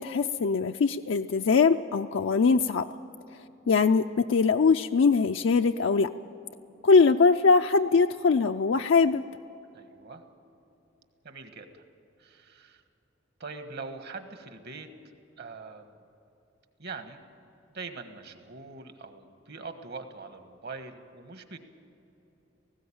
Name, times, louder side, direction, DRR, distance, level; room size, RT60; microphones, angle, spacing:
voice 1, 0.0-2.9 3.7-6.1 6.8-9.2, left 4 dB, 70° left, 6 dB, 0.4 m, -22 dB
voice 2, 9.7-10.2 11.2-11.7 12.2-12.8 13.4-14.9 15.4-15.9 16.8-17.2 17.7-21.6, right 4 dB, 55° right, 7 dB, 1.5 m, -42 dB
18.5 x 16.0 x 8.7 m, 2.9 s
head